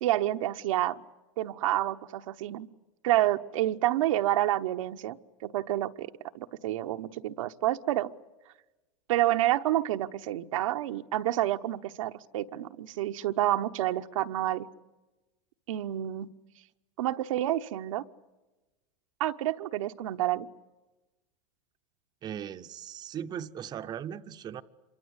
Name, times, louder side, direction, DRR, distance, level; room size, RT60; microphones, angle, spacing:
voice 1, 0.0-1.0 1.4-2.7 3.0-8.1 9.1-14.7 15.7-16.3 17.0-18.0 19.2-20.5, right 14 dB, 80° right, 7 dB, 1.0 m, -29 dB
voice 2, 22.2-24.6, right 9 dB, 25° right, 8 dB, 0.8 m, -38 dB
27.0 x 23.5 x 8.2 m, 1.1 s
supercardioid pair, 140°, 17 cm